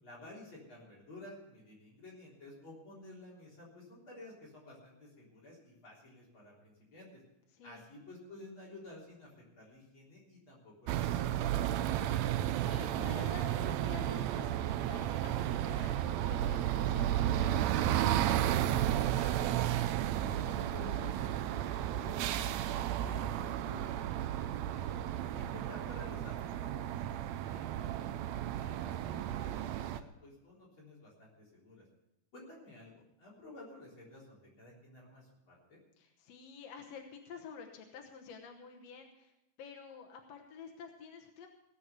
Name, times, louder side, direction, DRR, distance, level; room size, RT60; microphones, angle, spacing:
voice 1, 0.0-7.1 7.6-11.9 19.1-19.9 20.2-25.0 25.3-31.8 32.3-35.8, left 2 dB, 40° left, -5 dB, 4.4 m, -53 dB
voice 2, 7.5-7.9 12.1-18.3 36.0-39.3 39.6-41.5, left 6 dB, 60° left, 2 dB, 2.1 m, -50 dB
sound 1, 10.9-30.0, right 12 dB, 75° right, 1.6 m, -33 dB
18.0 x 7.3 x 6.7 m, 0.86 s
omnidirectional pair, 3.5 m